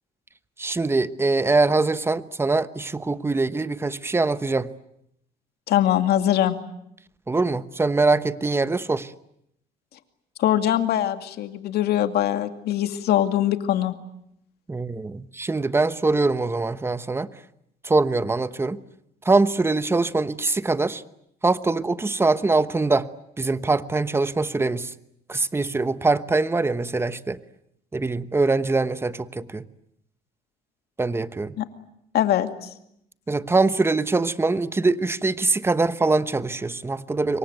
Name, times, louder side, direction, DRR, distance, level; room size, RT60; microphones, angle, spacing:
voice 1, 0.6-4.7 7.3-9.1 14.7-17.3 17.8-18.8 19.2-21.0 21.4-23.1 23.4-24.9 25.3-27.4 27.9-29.6 31.0-31.5 33.3-37.4, right 3 dB, 15° right, 1.1 m, -23 dB
voice 2, 5.7-6.6 10.4-13.9 31.6-31.7 32.1-32.7, left 11 dB, 70° left, 2.4 m, -22 dB
26.5 x 23.5 x 9.2 m
cardioid pair, 110°, 17 cm